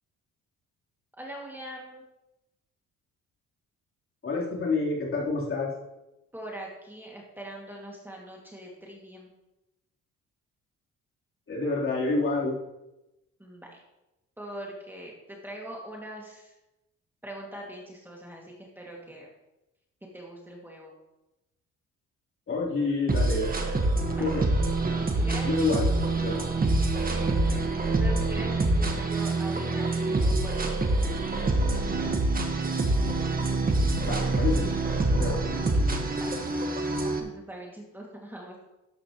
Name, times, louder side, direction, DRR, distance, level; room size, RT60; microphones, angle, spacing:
voice 1, 1.2-2.0 6.3-9.3 13.4-13.8 14.4-16.5 17.2-19.3 20.1-20.9 24.1-24.3 25.1-25.5 26.9-31.2 31.7-32.4 36.1-36.3 36.7-38.6, right 1 dB, 5° right, -2 dB, 2.5 m, -42 dB
voice 2, 4.2-5.7 11.5-12.6 22.5-23.5 24.0-24.5 25.4-25.9 26.2-26.5 34.0-34.7 35.1-35.6, left 3 dB, 45° left, -5 dB, 4.0 m, -28 dB
sound 1, 23.1-37.2, right 2 dB, 30° right, 1.7 m, -26 dB
13.0 x 9.5 x 3.2 m, 0.96 s
cardioid pair, 90°, 30 cm